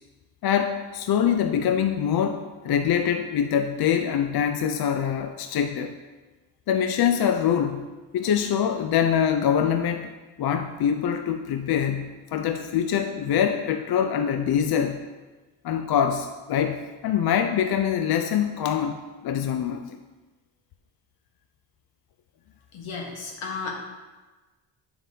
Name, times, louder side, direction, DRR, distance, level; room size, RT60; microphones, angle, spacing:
voice 1, 0.4-5.9 6.7-7.9 8.1-10.1 10.4-15.0 15.6-20.0, left 8 dB, 50° left, 7 dB, 0.5 m, -24 dB
voice 2, 22.7-23.7, left 4 dB, 75° left, 0 dB, 1.4 m, -33 dB
7.4 x 5.8 x 2.8 m, 1.2 s
cardioid pair, 70°, 50 cm